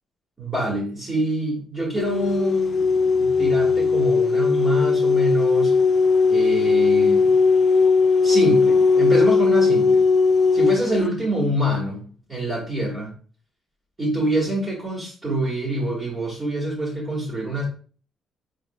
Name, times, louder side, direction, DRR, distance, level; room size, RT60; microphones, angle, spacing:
voice 1, 0.4-5.8 6.3-7.3 8.2-10.0 10.5-13.1 14.0-17.6, right 1 dB, 30° right, -5 dB, 1.6 m, -26 dB
sound 1, 2.0-11.0, left 4 dB, 45° left, 0.3 m, -18 dB
4.3 x 3.6 x 2.2 m, 0.40 s
cardioid pair, 90°, 0 cm